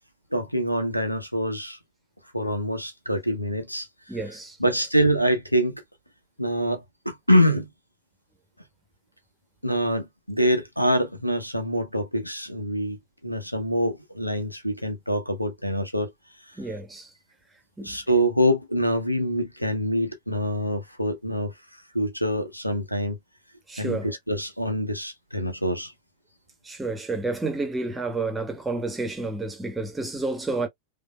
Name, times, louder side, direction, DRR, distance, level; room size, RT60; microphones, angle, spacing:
voice 1, 0.3-1.8 2.3-3.9 4.6-5.8 6.4-7.7 9.6-16.1 17.8-21.5 21.9-23.2 23.8-25.9, equal, 90° left, 1.1 m, -25 dB
voice 2, 4.1-4.7 16.6-17.1 17.8-18.0 23.7-24.1 26.6-30.7, right 3 dB, 10° right, 1.4 m, -30 dB
5.0 x 2.9 x 2.2 m
figure-of-eight pair, 90°, 0 cm